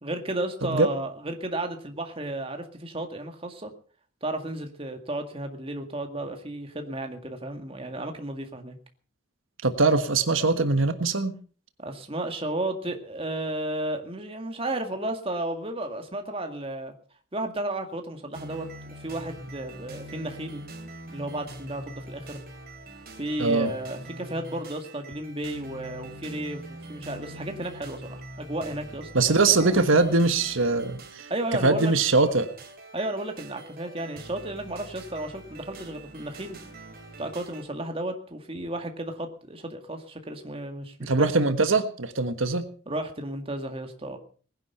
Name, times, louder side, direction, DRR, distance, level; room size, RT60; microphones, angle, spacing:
voice 1, 0.0-3.7 4.2-8.8 11.8-16.9 17.3-18.7 19.0-20.6 21.1-22.4 23.2-29.8 31.3-31.9 32.9-36.6 37.2-41.3 42.9-44.2, right 1 dB, 25° right, 5 dB, 2.0 m, -33 dB
voice 2, 9.6-11.3 23.4-23.7 29.1-31.3 31.6-32.5 41.0-42.6, right 3 dB, 80° right, 8 dB, 1.4 m, -22 dB
sound 1, 18.3-37.6, right 1 dB, 50° right, 3.2 m, -44 dB
19.5 x 11.0 x 5.6 m, 0.42 s
head